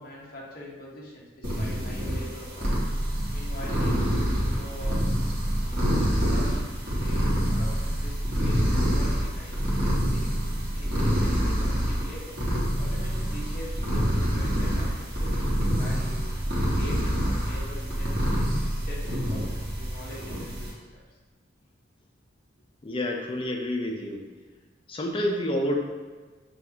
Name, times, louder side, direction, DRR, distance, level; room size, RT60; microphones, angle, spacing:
voice 1, 0.0-2.8 3.3-5.0 5.6-6.7 7.0-10.3 10.7-12.4 12.8-16.3 16.7-18.5 18.7-21.0, left 1 dB, 50° left, -4 dB, 0.9 m, -43 dB
sound 1, 1.4-20.7, equal, 50° right, 1.3 m, -26 dB
voice 2, 22.8-24.2 24.9-25.7, left 1 dB, 25° left, 1 dB, 0.5 m, -28 dB
6.2 x 2.5 x 2.8 m, 1.4 s
head